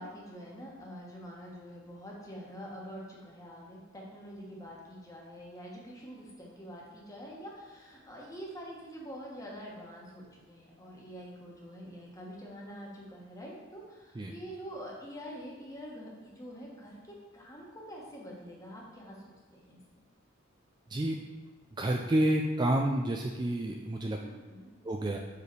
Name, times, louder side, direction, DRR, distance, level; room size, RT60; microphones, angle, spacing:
voice 1, 0.0-19.8 24.2-24.7, equal, 15° left, -3 dB, 1.2 m, -46 dB
voice 2, 20.9-21.2 21.7-24.2 24.8-25.2, right 1 dB, 20° right, 2 dB, 0.3 m, -29 dB
5.0 x 4.8 x 4.6 m, 1.3 s
head